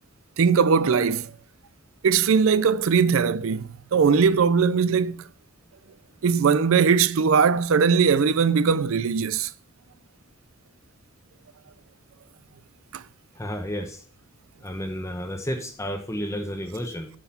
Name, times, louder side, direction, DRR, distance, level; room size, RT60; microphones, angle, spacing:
voice 1, 0.4-1.3 2.0-5.2 6.2-9.5 12.9-13.0, right 6 dB, 70° right, 0.4 m, -20 dB
voice 2, 13.3-14.0 14.6-17.1, equal, 15° left, 0.9 m, -31 dB
8.6 x 5.7 x 5.6 m
head